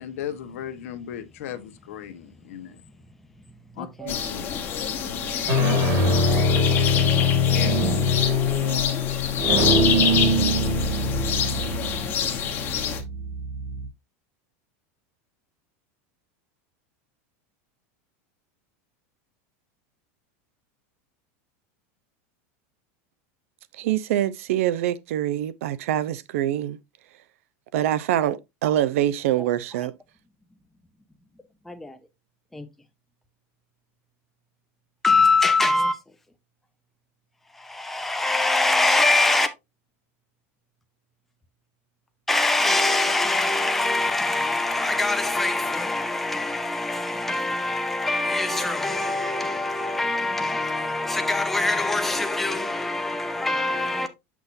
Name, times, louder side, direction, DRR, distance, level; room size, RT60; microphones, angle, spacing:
voice 1, 0.0-2.8 3.8-4.5, left 10 dB, 85° left, 1.1 m, -36 dB
voice 2, 3.8-4.1 31.7-32.0 32.5-32.7 35.0-36.0 37.5-39.5 42.3-54.1, left 2 dB, 5° left, 0.5 m, -23 dB
sound 1, 4.0-4.4 5.2-13.9, left 2 dB, 40° right, 1.8 m, -23 dB
sound 2, 4.1-13.0, left 8 dB, 30° left, 1.1 m, -27 dB
voice 3, 23.8-26.8 27.7-29.9, right 12 dB, 75° right, 0.6 m, -24 dB
7.0 x 6.0 x 2.6 m
supercardioid pair, 170°, 8 cm